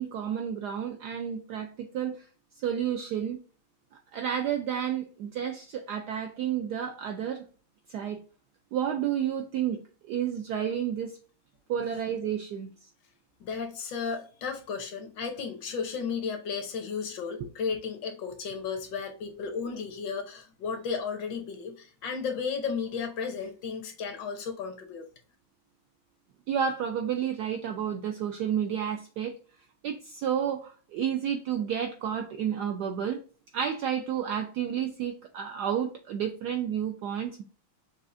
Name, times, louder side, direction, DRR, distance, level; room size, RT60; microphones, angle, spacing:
voice 1, 0.0-2.2 2.6-3.4 4.1-7.4 7.9-8.2 8.7-11.1 11.7-12.7 26.5-29.3 29.8-33.2 33.5-37.4, right 9 dB, 75° right, 0.9 m, -31 dB
voice 2, 13.4-25.1, left 5 dB, 70° left, 1.3 m, -34 dB
6.1 x 2.4 x 2.5 m
omnidirectional pair, 2.2 m